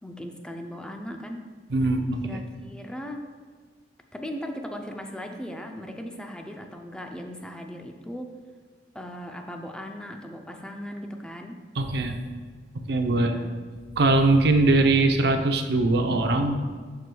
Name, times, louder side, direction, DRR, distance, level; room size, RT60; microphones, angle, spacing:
voice 1, 0.0-1.4 2.2-3.3 4.1-8.3 8.9-11.6 13.1-13.5, equal, 5° left, 3 dB, 0.4 m, -38 dB
voice 2, 1.7-2.4 11.8-12.2 12.9-13.3 14.0-16.5, right 2 dB, 60° right, 5 dB, 0.6 m, -21 dB
11.0 x 4.7 x 2.3 m, 1.5 s
head